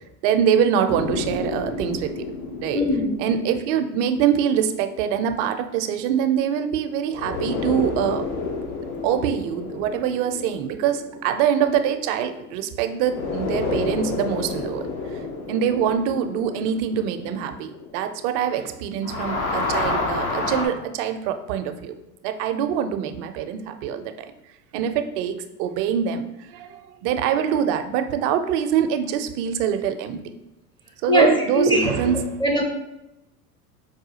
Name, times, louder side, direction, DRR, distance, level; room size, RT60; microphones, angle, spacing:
voice 1, 0.2-2.3 2.6-2.8 3.2-8.2 9.0-14.8 15.5-21.9 22.2-24.3 24.7-30.2 31.0-32.3, right 8 dB, 55° right, 9 dB, 0.5 m, -24 dB
sound 1, 0.9-5.4 7.1-12.6 13.0-18.7 18.9-20.7, left 3 dB, 65° left, 0.9 m, -30 dB
voice 2, 2.7-3.1 31.1-31.3 31.5-31.9 32.4-32.6, equal, 10° left, 1 dB, 0.5 m, -19 dB
4.8 x 2.3 x 2.7 m, 0.91 s
hypercardioid pair, 90°, 46 cm